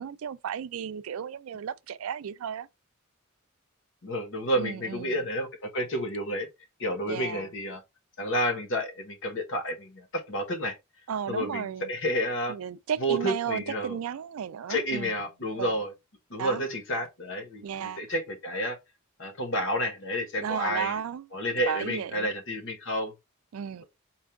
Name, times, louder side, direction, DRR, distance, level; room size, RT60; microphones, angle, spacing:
voice 1, 0.0-2.7 4.6-5.2 7.1-7.5 11.1-11.9 12.5-15.1 15.5-15.7 16.4-16.6 17.6-18.0 20.4-21.3 21.7-22.3 23.5-23.8, right 8 dB, 85° right, 0.4 m, -34 dB
voice 2, 4.0-5.5 5.7-6.5 6.8-7.8 8.2-10.8 11.3-12.6 13.0-14.0 14.7-15.9 16.3-18.8 19.2-21.0 21.3-23.1, equal, 65° left, 1.2 m, -30 dB
4.5 x 2.4 x 3.5 m
head